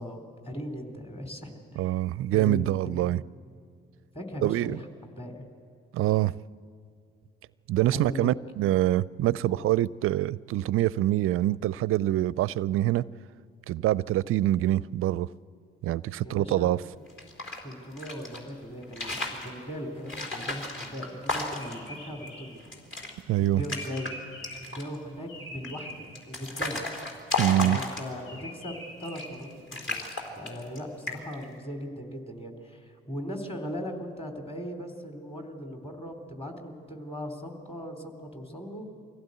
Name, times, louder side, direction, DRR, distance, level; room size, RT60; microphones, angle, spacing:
voice 1, 0.0-1.9 2.3-3.0 4.1-5.4 7.9-8.3 9.5-9.6 16.2-16.7 17.6-22.6 23.5-24.1 24.6-26.8 27.5-30.0 30.4-38.9, equal, 20° left, 3.7 m, -38 dB
voice 2, 1.8-3.2 4.4-4.8 5.9-6.3 7.7-13.1 13.7-15.3 15.8-16.8 23.3-23.6 27.4-27.8, right 14 dB, 50° right, 0.4 m, -25 dB
sound 1, 17.1-18.4 18.8-19.5 20.1-21.9 22.3-22.4 22.6-23.1 23.4-24.1 24.4-25.0 25.6-28.3 29.0-29.4 29.7-30.8 31.1-31.4, left 2 dB, 40° left, 3.9 m, -34 dB
sound 2, 21.6-24.8 25.3-25.9 28.3-29.3, left 1 dB, 70° left, 6.7 m, -44 dB
24.0 x 16.0 x 8.0 m
figure-of-eight pair, 50°, 29 cm